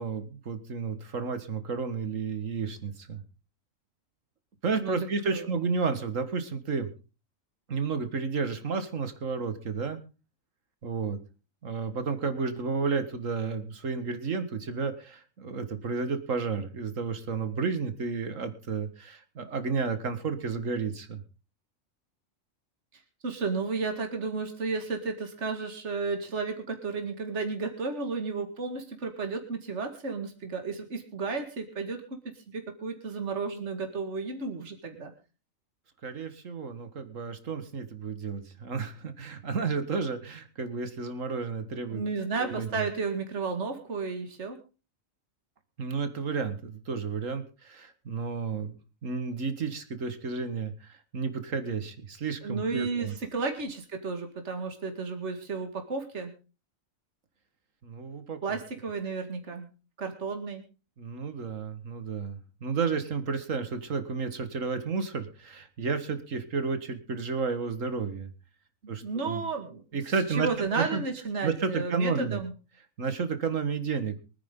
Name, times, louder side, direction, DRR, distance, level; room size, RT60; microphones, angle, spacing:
voice 1, 0.0-3.2 4.6-6.9 7.7-10.0 10.8-11.2 11.6-21.2 36.0-42.0 42.4-42.9 45.8-48.7 49.0-53.1 57.8-58.6 61.0-68.3 68.9-69.4 69.9-71.0 71.4-72.4 73.0-74.2, right 5 dB, 75° right, 10 dB, 2.1 m, -32 dB
voice 2, 4.8-5.5 22.9-35.1 41.9-44.6 52.4-56.3 58.4-59.7 60.0-60.6 68.8-69.8 70.3-72.5, right 4 dB, 60° right, 5 dB, 2.4 m, -33 dB
24.0 x 9.6 x 3.8 m, 0.33 s
omnidirectional pair, 1.4 m